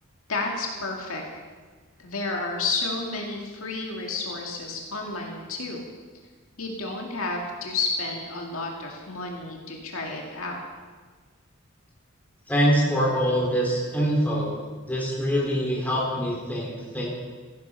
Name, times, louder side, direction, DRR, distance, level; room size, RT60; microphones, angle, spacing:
voice 1, 0.3-1.2 2.0-5.8 6.6-10.6, left 3 dB, 75° left, 0 dB, 2.3 m, -31 dB
voice 2, 12.5-14.6 14.9-17.1, equal, 10° left, -4 dB, 4.0 m, -24 dB
15.0 x 11.5 x 5.7 m, 1.4 s
head